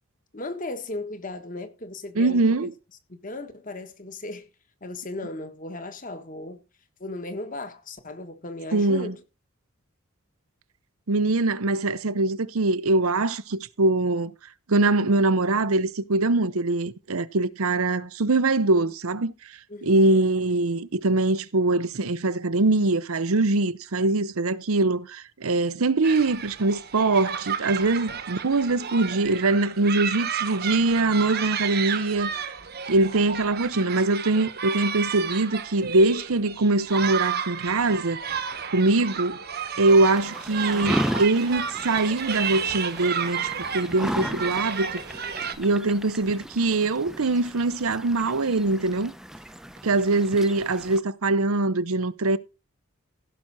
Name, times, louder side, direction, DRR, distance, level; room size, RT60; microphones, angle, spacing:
voice 1, 0.3-2.4 3.1-4.5 4.8-6.6 7.0-9.2 19.7-20.2, left 2 dB, 35° left, 1.6 m, -36 dB
voice 2, 2.2-2.7 8.7-9.1 11.1-14.3 14.7-19.3 19.8-32.5 32.9-38.2 38.7-39.4 39.8-44.9 45.6-49.1 49.8-52.4, right 2 dB, 75° right, 0.8 m, -23 dB
sound 1, 26.0-45.5, right 7 dB, 45° right, 1.2 m, -32 dB
sound 2, 39.9-51.0, equal, ahead, 0.7 m, -35 dB
16.5 x 6.1 x 4.1 m
head